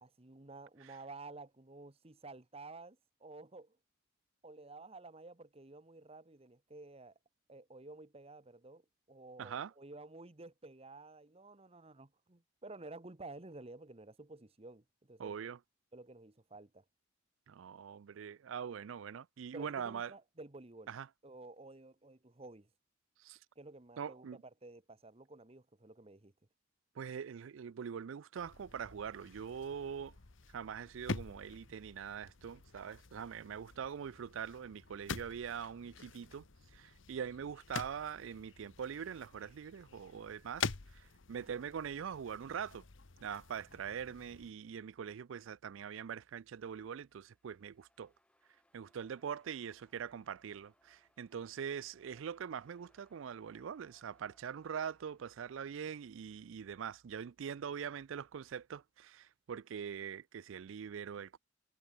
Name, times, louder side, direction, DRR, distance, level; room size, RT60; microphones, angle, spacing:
voice 1, 0.0-3.8 4.4-7.1 7.5-15.5 15.9-16.8 19.5-21.0 21.2-22.7 23.6-24.3 24.6-26.3, right 2 dB, 30° right, 1.1 m, -52 dB
voice 2, 9.4-9.7 15.2-15.6 17.5-20.1 20.9-21.1 23.2-23.4 24.0-24.4 27.0-30.1 30.5-36.4 36.7-42.8 43.2-48.1 48.7-61.4, right 7 dB, 70° right, 0.4 m, -43 dB
sound 1, 28.4-44.5, left 5 dB, 70° left, 1.1 m, -47 dB
sound 2, 46.6-56.4, left 1 dB, 5° left, 3.0 m, -75 dB
head